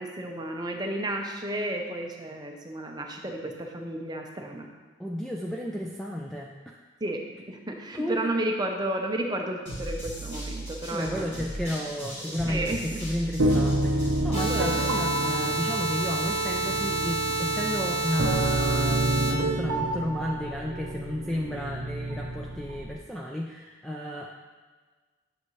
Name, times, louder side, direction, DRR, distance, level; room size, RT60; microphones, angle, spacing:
voice 1, 0.0-4.7 7.0-11.5 12.2-13.0, right 1 dB, 20° right, 2 dB, 0.8 m, -32 dB
voice 2, 5.0-6.8 7.9-8.2 10.9-24.3, equal, ahead, -2 dB, 0.4 m, -33 dB
sound 1, 9.7-15.0, right 1 dB, 55° left, 2.7 m, -37 dB
sound 2, 13.4-23.0, right 1 dB, 75° right, 0.7 m, -29 dB
sound 3, 14.3-19.3, right 3 dB, 25° left, 1.4 m, -29 dB
10.0 x 6.7 x 3.2 m, 1.4 s
head